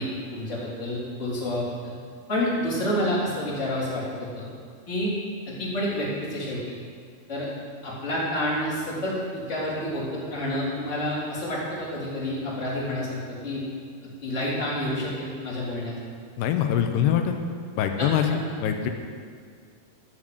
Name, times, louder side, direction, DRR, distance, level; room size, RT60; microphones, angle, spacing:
voice 1, 0.0-1.9 2.3-4.5 4.9-5.1 5.5-6.6 7.3-7.5 7.8-13.6 14.0-15.9 18.0-18.1, left 1 dB, 20° left, -7 dB, 3.3 m, -29 dB
voice 2, 16.4-17.3 17.8-18.9, left 9 dB, 90° left, 5 dB, 2.8 m, -24 dB
12.5 x 7.5 x 7.7 m, 2.1 s
omnidirectional pair, 4.7 m